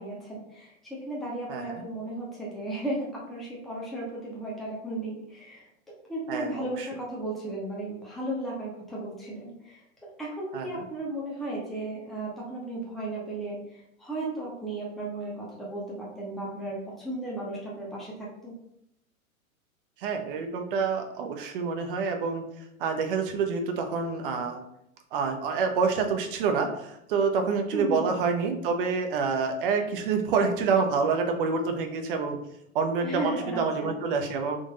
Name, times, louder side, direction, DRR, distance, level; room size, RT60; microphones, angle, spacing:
voice 1, 0.0-9.8 10.2-16.8 17.0-18.5 27.7-28.1 33.0-33.9, right 1 dB, ahead, -5 dB, 0.9 m, -35 dB
voice 2, 1.5-1.8 6.3-6.9 10.5-10.8 20.0-22.4 22.8-24.6 25.1-32.4 32.7-34.6, right 5 dB, 40° right, 5 dB, 0.7 m, -27 dB
3.9 x 3.5 x 3.8 m, 0.78 s
figure-of-eight pair, 100°, 42 cm